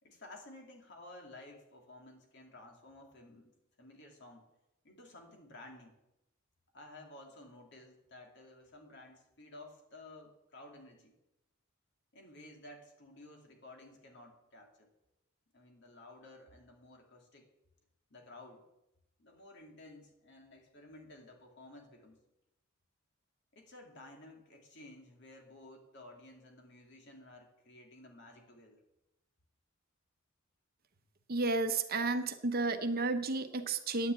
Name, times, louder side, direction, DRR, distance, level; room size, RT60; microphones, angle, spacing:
voice 1, 0.0-3.5 3.8-4.4 4.8-6.0 6.7-11.2 12.1-14.9 15.5-17.5 18.1-18.6 19.2-22.2 23.5-28.8, left 2 dB, 60° left, 2 dB, 2.7 m, -54 dB
voice 2, 31.3-34.1, right 3 dB, 45° right, 9 dB, 0.9 m, -32 dB
10.0 x 9.5 x 8.3 m, 0.91 s
head